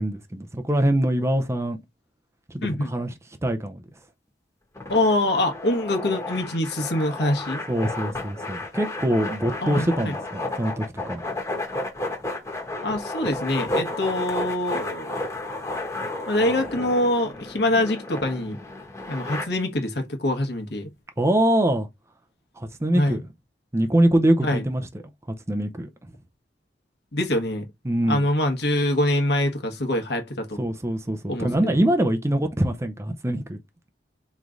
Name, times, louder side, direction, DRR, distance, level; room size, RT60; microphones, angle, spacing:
voice 1, 0.0-1.8 2.5-3.1 3.4-3.8 7.7-11.2 21.2-21.9 22.6-23.2 23.7-24.8 25.5-25.9 27.8-28.2 30.6-33.6, right 1 dB, 15° right, 0.5 m, -23 dB
voice 2, 2.6-2.9 4.9-7.6 9.6-10.1 12.8-15.2 16.3-18.6 19.1-20.9 22.9-23.2 24.4-24.6 27.1-27.6 28.1-30.6 31.3-31.8, left 1 dB, 65° left, 1.2 m, -24 dB
sound 1, 4.7-19.4, left 2 dB, 20° left, 1.1 m, -32 dB
3.6 x 3.1 x 3.8 m
head